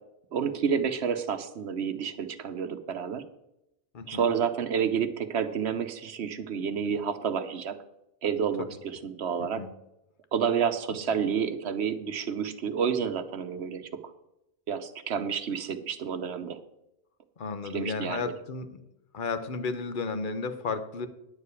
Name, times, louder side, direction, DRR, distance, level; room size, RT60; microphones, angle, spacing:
voice 1, 0.3-3.2 4.1-7.7 8.2-9.7 10.3-13.9 14.7-16.6 17.7-18.3, right 7 dB, 80° right, 10 dB, 1.1 m, -29 dB
voice 2, 3.9-4.3 8.6-8.8 9.4-9.7 17.4-18.7 19.1-21.1, left 4 dB, 55° left, 10 dB, 1.0 m, -33 dB
10.5 x 4.9 x 8.2 m, 0.85 s
omnidirectional pair, 1.1 m